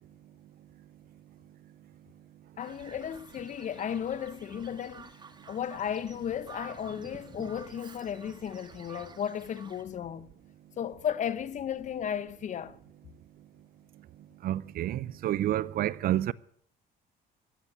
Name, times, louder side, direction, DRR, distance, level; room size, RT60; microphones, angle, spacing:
voice 1, 2.6-5.1 5.5-10.3 10.8-12.8, left 9 dB, 45° left, 0.9 m, -34 dB
Bird vocalization bird call bird song, 2.6-9.8, right 4 dB, 25° right, 1.6 m, -50 dB
voice 2, 14.4-16.3, right 13 dB, 60° right, 0.6 m, -29 dB
14.5 x 9.8 x 9.5 m
cardioid pair, 110°, 17 cm